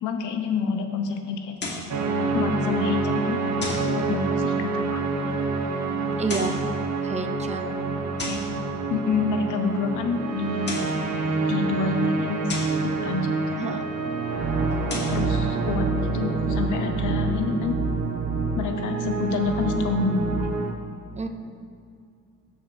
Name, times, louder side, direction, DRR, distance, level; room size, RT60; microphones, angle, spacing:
voice 1, 0.0-1.5 2.3-5.0 8.2-8.4 8.9-10.8 11.5-13.7 15.1-17.8 18.5-20.5, left 5 dB, 80° left, 5 dB, 0.8 m, -28 dB
sound 1, 1.6-2.0 3.6-4.0 6.1-6.7 8.2-8.5 10.5-11.0 12.5-12.8 14.7-15.2, left 2 dB, 35° left, 1.5 m, -33 dB
sound 2, 1.9-20.7, right 4 dB, 60° right, 0.9 m, -27 dB
voice 2, 6.2-6.6 7.0-7.8 13.6-13.8 21.2-21.3, right 4 dB, 20° right, 5 dB, 0.7 m, -29 dB
14.5 x 5.0 x 2.6 m, 2.3 s
cardioid pair, 90°, 30 cm